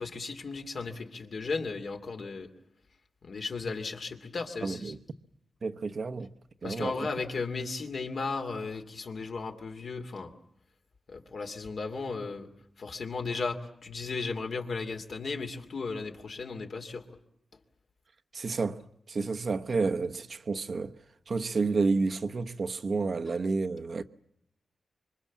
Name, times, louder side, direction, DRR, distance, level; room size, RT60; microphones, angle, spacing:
voice 1, 0.0-2.5 3.2-4.9 6.6-10.3 11.1-12.5 12.8-17.0, left 4 dB, 65° left, 2.7 m, -35 dB
voice 2, 4.6-5.0 5.6-6.3 6.6-6.9 18.3-18.8 19.1-20.9 21.3-24.0, right 4 dB, 55° right, 1.0 m, -30 dB
25.5 x 24.0 x 7.4 m
cardioid pair, 80°, 0 cm